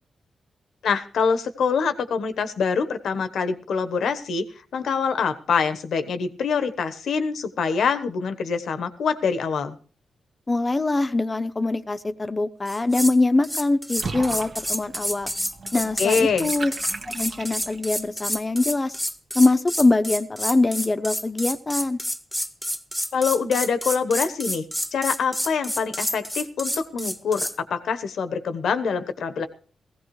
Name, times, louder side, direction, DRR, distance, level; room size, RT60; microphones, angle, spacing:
voice 1, 0.8-4.5 4.7-9.8 16.0-16.5 23.1-24.6 24.9-29.5, left 5 dB, 80° left, 10 dB, 1.1 m, -25 dB
voice 2, 10.5-15.3 15.7-16.7 17.1-19.0 19.3-22.0, left 2 dB, 25° left, 10 dB, 0.7 m, -23 dB
sound 1, 12.7-13.2 13.4-27.6, equal, ahead, 0.9 m, -29 dB
Water / Bathtub (filling or washing), 14.0-18.0, right 4 dB, 60° right, 1.4 m, -37 dB
17.5 x 15.5 x 3.2 m, 0.42 s
cardioid pair, 80°, 0 cm